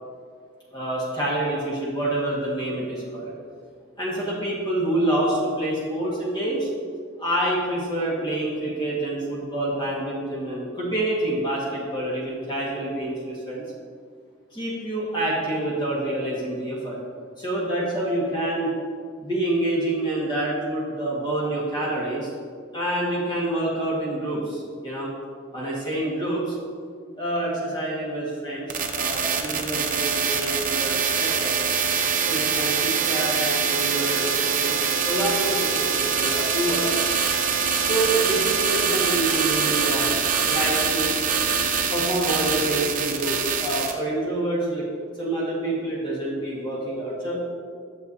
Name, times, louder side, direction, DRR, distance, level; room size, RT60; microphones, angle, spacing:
voice 1, 0.7-3.3 4.0-6.7 7.2-13.6 14.5-17.0 17.4-18.7 19.2-22.3 22.7-25.1 25.5-26.5 27.2-31.5 32.3-37.0 37.9-40.1 40.5-41.1 41.9-44.8 45.2-47.4, right 1 dB, 25° left, -6 dB, 1.6 m, -27 dB
sound 1, 28.7-43.9, right 6 dB, 45° right, 0.7 m, -24 dB
11.5 x 6.9 x 2.8 m, 2.1 s
head